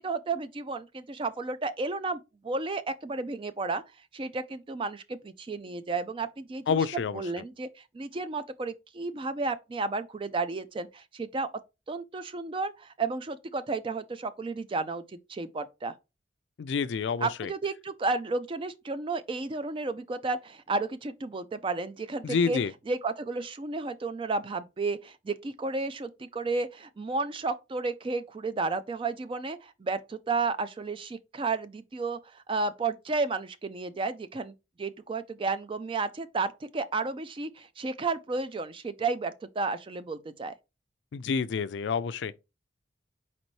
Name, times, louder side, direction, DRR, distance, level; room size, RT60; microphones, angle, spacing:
voice 1, 0.0-3.8 4.1-11.5 11.9-15.9 17.2-22.6 22.9-34.5 34.8-40.5, right 3 dB, 30° right, 0.3 m, -32 dB
voice 2, 6.7-7.2 16.6-17.5 22.2-22.7 41.1-42.4, left 5 dB, 70° left, 0.4 m, -28 dB
4.3 x 4.0 x 3.1 m
head